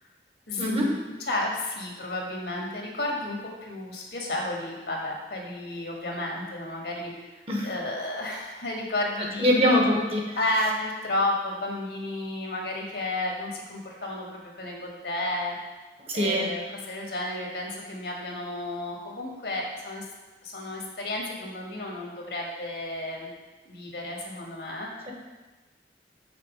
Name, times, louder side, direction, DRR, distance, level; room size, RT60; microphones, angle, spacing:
voice 1, 0.5-1.0 1.3-7.1 7.6-9.8 10.3-15.5 16.1-20.0 20.4-23.3 23.6-24.9, left 1 dB, 70° left, -1 dB, 1.5 m, -32 dB
voice 2, 9.2-10.4 16.1-16.5, equal, 35° right, -1 dB, 1.1 m, -23 dB
5.9 x 4.2 x 6.2 m, 1.2 s
head